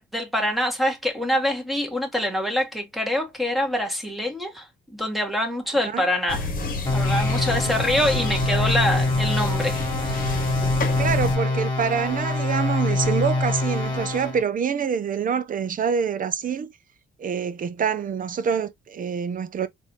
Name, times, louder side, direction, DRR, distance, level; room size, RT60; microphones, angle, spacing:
voice 1, 0.0-4.7 4.9-6.5 6.9-10.4, left 1 dB, ahead, 1.4 m, -25 dB
sound 1, 6.3-11.4, left 3 dB, 45° left, 1.1 m, -29 dB
sound 2, 6.9-14.4, left 2 dB, 20° left, 1.7 m, -24 dB
voice 2, 10.8-16.7 17.2-19.7, right 7 dB, 45° right, 0.7 m, -26 dB
4.0 x 2.7 x 2.9 m
cardioid pair, 90°, 20 cm